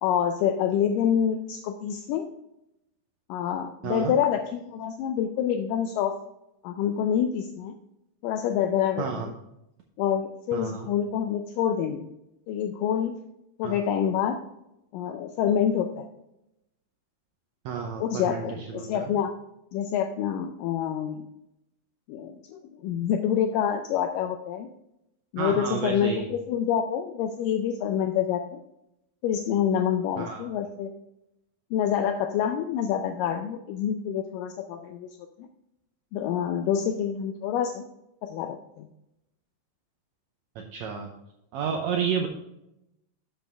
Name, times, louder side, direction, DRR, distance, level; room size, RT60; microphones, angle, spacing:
voice 1, 0.0-2.3 3.3-6.1 6.6-7.7 8.2-9.3 10.0-12.1 12.5-13.2 13.6-14.4 14.9-16.1 18.0-19.3 19.7-21.2 22.1-24.7 25.3-28.6 29.2-30.9 31.7-35.1 35.4-35.5 36.1-37.8 38.2-38.9, left 9 dB, 80° left, 6 dB, 2.0 m, -27 dB
voice 2, 9.0-9.3 10.5-10.9 13.6-13.8 17.6-19.1 25.4-26.3 30.2-30.5 40.5-41.1 41.5-42.3, right 6 dB, 80° right, 2 dB, 1.6 m, -31 dB
7.8 x 7.2 x 3.4 m, 0.86 s
omnidirectional pair, 4.1 m